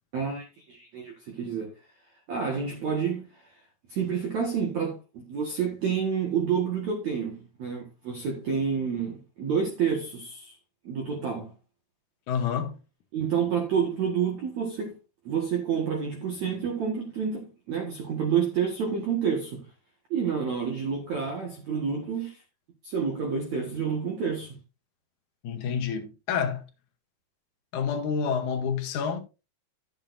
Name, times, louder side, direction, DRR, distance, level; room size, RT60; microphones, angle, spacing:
voice 1, 0.1-1.8 2.3-3.5 3.9-10.6 10.8-11.5 13.1-14.9 15.3-19.7 20.1-22.4 22.8-24.6, right 6 dB, 55° right, 2.3 m, -29 dB
voice 2, 12.3-12.8 25.4-26.6 27.7-29.2, left 6 dB, 70° left, 1.9 m, -28 dB
13.0 x 8.8 x 2.6 m
omnidirectional pair, 4.9 m